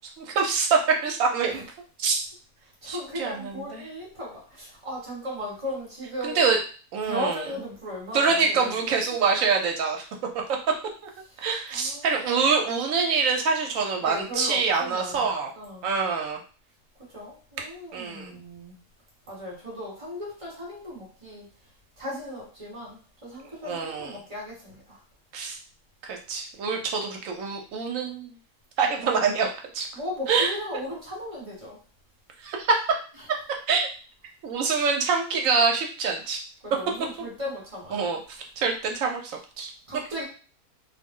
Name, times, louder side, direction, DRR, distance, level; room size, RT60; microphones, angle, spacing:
voice 1, 0.2-1.7 2.0-2.2 2.9-3.8 6.2-6.6 6.9-7.4 8.1-10.0 11.4-15.5 15.8-16.4 17.9-18.3 23.6-24.2 25.3-25.6 26.0-28.4 28.8-29.9 30.3-30.5 32.4-32.8 33.7-33.9 34.4-36.4 37.2-37.3 37.9-38.2 38.6-39.7, right 5 dB, 65° right, 2 dB, 1.0 m, -25 dB
voice 2, 2.8-6.4 7.0-9.0 11.4-11.5 11.7-12.5 14.0-15.2 15.5-15.9 17.1-18.8 19.3-21.5 22.0-23.0 23.2-25.0 29.0-29.1 29.9-31.8 36.6-38.1 39.9-40.2, left 1 dB, 25° right, -4 dB, 1.2 m, -36 dB
2.6 x 2.0 x 3.6 m, 0.38 s
omnidirectional pair, 1.6 m